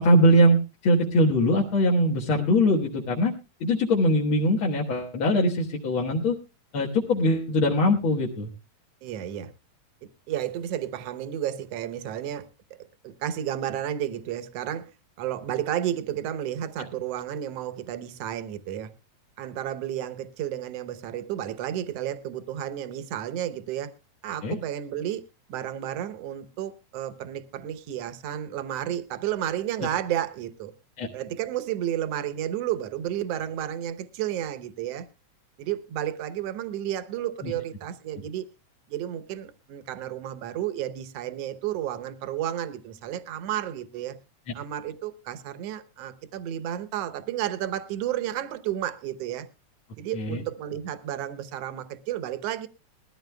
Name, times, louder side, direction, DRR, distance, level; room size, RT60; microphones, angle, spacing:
voice 1, 0.0-3.3 3.6-6.4 6.7-8.5 24.4-24.6 31.0-31.1 37.4-37.5 50.1-50.4, equal, 50° left, 2.0 m, -22 dB
voice 2, 9.0-9.5 10.3-12.5 13.0-14.9 15.2-18.9 19.4-23.9 24.2-25.2 25.5-30.7 31.1-35.1 35.6-38.5 38.9-44.2 44.6-49.5 50.0-52.7, right 11 dB, 65° right, 1.8 m, -32 dB
21.0 x 14.5 x 2.2 m
omnidirectional pair, 3.3 m